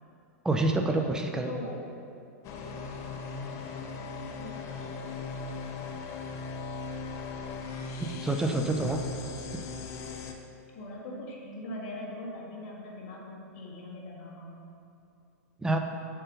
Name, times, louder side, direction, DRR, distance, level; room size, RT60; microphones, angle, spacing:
voice 1, 0.4-1.5 8.1-9.0 15.6-15.8, right 2 dB, 10° right, 4 dB, 0.6 m, -27 dB
voice 2, 1.4-1.9 3.8-6.7 10.7-14.6, left 1 dB, 60° left, -2 dB, 1.7 m, -43 dB
sound 1, 2.4-10.3, left 4 dB, 40° left, 0.7 m, -38 dB
7.3 x 4.6 x 5.2 m, 2.6 s
hypercardioid pair, 110°, 8 cm